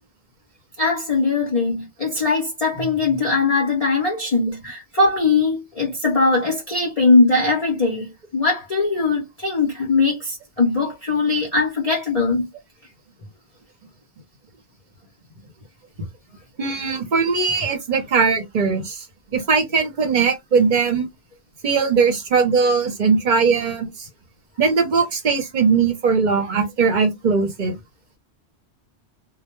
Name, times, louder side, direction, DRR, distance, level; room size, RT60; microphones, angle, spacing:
voice 1, 0.8-12.5, left 3 dB, 40° left, 0.6 m, -20 dB
voice 2, 16.6-19.0 19.3-21.1 21.6-24.1 24.6-27.8, right 5 dB, 45° right, 0.7 m, -20 dB
2.1 x 2.1 x 2.9 m
omnidirectional pair, 1.2 m